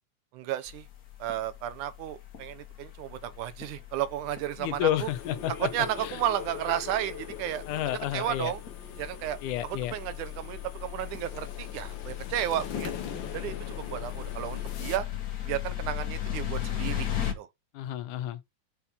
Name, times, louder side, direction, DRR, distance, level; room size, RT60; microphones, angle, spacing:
voice 1, 0.3-0.9 1.2-5.1 5.7-7.6 8.1-8.6 9.0-9.4 9.6-12.9 13.3-15.1 15.5-17.1 17.4-17.5, right 12 dB, 80° right, 2.4 m, -33 dB
sound 1, 0.7-17.3, left 11 dB, 40° left, 1.4 m, -38 dB
voice 2, 4.6-5.7 6.0-6.2 7.7-8.5 9.4-10.0 17.7-18.4, left 12 dB, 85° left, 2.3 m, -30 dB
sound 2, 5.0-15.0, left 8 dB, 65° left, 1.2 m, -42 dB
6.4 x 4.4 x 5.5 m
omnidirectional pair, 3.5 m